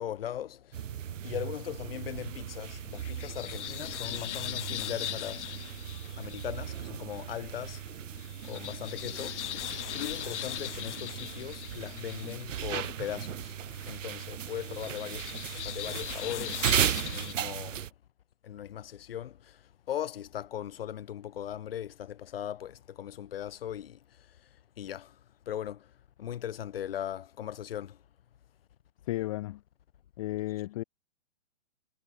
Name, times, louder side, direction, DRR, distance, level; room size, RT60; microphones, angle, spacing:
voice 1, 0.0-5.5 6.2-7.8 8.4-9.4 9.9-13.6 13.9-16.7 17.0-17.9 18.4-19.6 19.9-24.0 24.8-25.1 25.5-25.9 26.2-28.0, left 10 dB, 50° left, 1.8 m, -39 dB
sound 1, 0.7-17.9, right 10 dB, 85° right, 0.9 m, -36 dB
sound 2, 2.6-17.3, left 12 dB, 70° left, 0.5 m, -41 dB
voice 2, 29.1-29.6 30.2-30.8, left 17 dB, 25° left, 1.3 m, -33 dB
hypercardioid pair, 165°, 37 cm